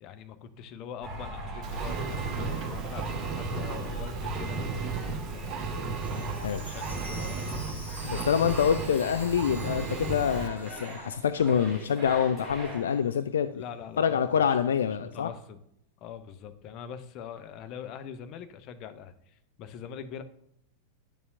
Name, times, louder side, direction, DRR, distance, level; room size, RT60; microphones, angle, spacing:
voice 1, 0.0-5.6 6.1-7.7 13.5-14.6 15.0-15.6 16.0-20.2, left 8 dB, 40° left, 9 dB, 0.7 m, -43 dB
sound 1, 1.0-13.1, right 1 dB, ahead, 3.1 m, -41 dB
Engine, 1.6-10.5, right 4 dB, 30° right, 1.2 m, -34 dB
Chime, 5.9-11.9 12.2-12.3 12.9-13.0, left 1 dB, 85° left, 1.6 m, -47 dB
voice 2, 8.0-13.6 14.0-15.3, left 8 dB, 65° left, 11 dB, 0.3 m, -26 dB
10.0 x 6.8 x 2.5 m, 0.75 s
figure-of-eight pair, 90°, 0 cm